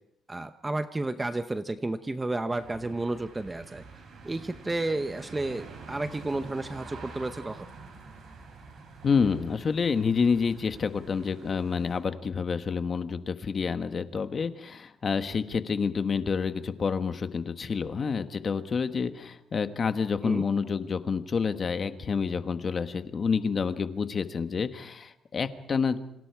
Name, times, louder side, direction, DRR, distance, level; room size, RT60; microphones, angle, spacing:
voice 1, 0.3-3.8 4.2-7.6 20.2-20.4, right 2 dB, 15° right, 10 dB, 0.8 m, -32 dB
sound 1, 2.5-12.0, right 4 dB, 60° right, 7.0 m, -47 dB
voice 2, 9.0-26.0, left 5 dB, 35° left, 9 dB, 1.4 m, -28 dB
29.0 x 26.5 x 4.8 m, 0.79 s
cardioid pair, 145°, 0 cm